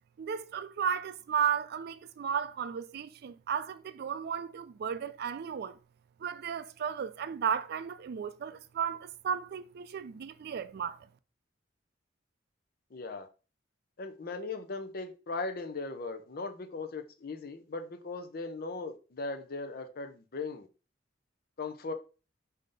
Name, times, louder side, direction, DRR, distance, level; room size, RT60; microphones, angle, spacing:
voice 1, 0.2-5.8 6.2-11.0, right 7 dB, 55° right, 0.3 m, -34 dB
voice 2, 12.9-13.3 14.0-20.7 21.6-21.9, left 3 dB, 55° left, 0.6 m, -38 dB
5.1 x 2.8 x 3.7 m
head